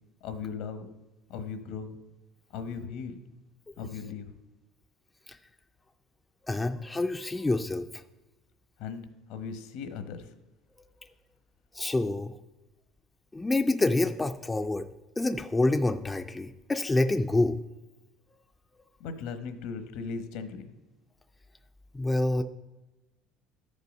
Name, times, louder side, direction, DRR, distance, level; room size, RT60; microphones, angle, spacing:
voice 1, 0.2-0.9 1.3-2.0 2.5-3.2 3.8-4.3 8.8-10.3 19.0-20.7, left 5 dB, 75° left, 10 dB, 1.0 m, -38 dB
voice 2, 6.5-8.0 11.7-12.3 13.3-14.9 15.2-17.6 21.9-22.4, left 2 dB, 10° left, 7 dB, 0.4 m, -27 dB
13.0 x 5.4 x 5.3 m, 1.1 s
cardioid pair, 130°, 0 cm